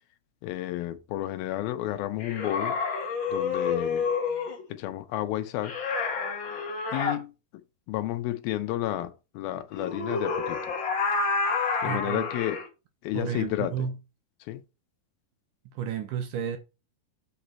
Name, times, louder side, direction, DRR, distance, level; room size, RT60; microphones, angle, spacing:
voice 1, 0.4-2.8 3.3-4.1 4.7-5.8 6.9-7.3 7.9-10.7 11.8-12.6 13.0-13.7 14.5-14.6, left 14 dB, 80° left, 2.5 m, -31 dB
sound 1, 2.2-4.6 5.6-7.2 9.7-12.7, left 4 dB, 50° left, 1.4 m, -29 dB
voice 2, 11.9-12.3 13.1-14.0 15.8-16.6, right 8 dB, 70° right, 2.2 m, -32 dB
7.7 x 5.0 x 4.4 m
omnidirectional pair, 4.4 m